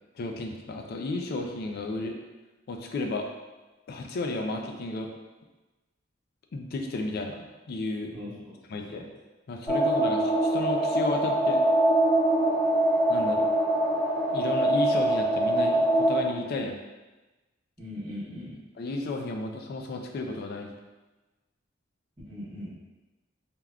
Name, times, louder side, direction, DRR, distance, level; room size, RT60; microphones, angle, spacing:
voice 1, 0.1-2.2 2.7-3.3 3.9-5.1 6.5-8.1 8.7-9.1 9.5-11.6 13.1-13.5 14.3-16.8 18.8-20.8, left 2 dB, 55° left, 3 dB, 0.3 m, -33 dB
voice 2, 8.1-8.5 8.9-9.0 17.8-18.6 22.2-22.7, left 1 dB, 25° right, -17 dB, 1.0 m, -39 dB
sound 1, 9.7-16.2, right 1 dB, 10° left, 0.6 m, -23 dB
3.4 x 2.4 x 2.2 m, 1.2 s
head